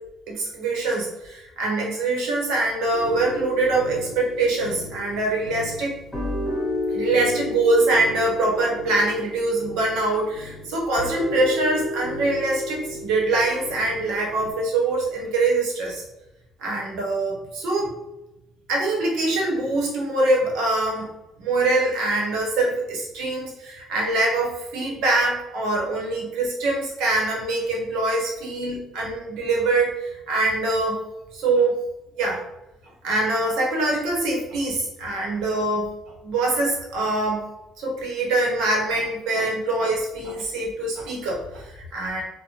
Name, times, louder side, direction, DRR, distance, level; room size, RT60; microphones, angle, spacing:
voice 1, 0.3-6.0 6.9-16.0 16.6-17.9 18.7-21.1 21.4-31.0 31.3-31.8 32.2-32.4 33.0-35.9 36.2-37.5 37.8-42.2, right 2 dB, 80° right, -2 dB, 0.9 m, -24 dB
sound 1, 2.9-14.5, left 1 dB, 5° left, 1.5 m, -32 dB
2.6 x 2.1 x 2.9 m, 0.94 s
cardioid pair, 105°, 0 cm